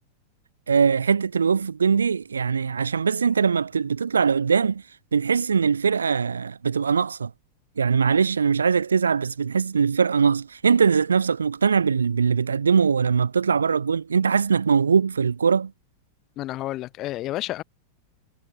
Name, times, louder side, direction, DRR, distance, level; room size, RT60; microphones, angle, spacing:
voice 1, 0.7-4.8 5.1-7.3 7.8-15.7, right 6 dB, 70° right, 4.5 m, -21 dB
voice 2, 16.4-17.6, left 15 dB, 35° left, 4.7 m, -30 dB
figure-of-eight pair, 90°, 0 cm